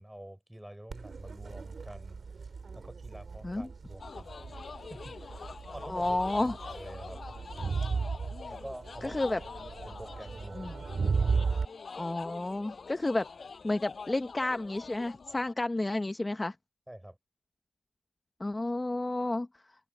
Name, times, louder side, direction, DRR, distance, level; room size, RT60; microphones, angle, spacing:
voice 1, 0.0-2.2 2.7-4.3 4.9-7.2 8.5-9.2 9.8-10.8 16.9-17.2, right 1 dB, 5° right, 6.5 m, -47 dB
Crowd, 0.9-11.7, right 5 dB, 45° right, 2.5 m, -35 dB
sound 1, 4.0-15.5, left 5 dB, 45° left, 5.5 m, -45 dB
voice 2, 5.8-6.6 9.0-9.4 10.5-10.7 12.0-13.3 13.6-16.5 18.4-19.5, left 2 dB, 20° left, 0.8 m, -31 dB
cardioid pair, 70°, 0 cm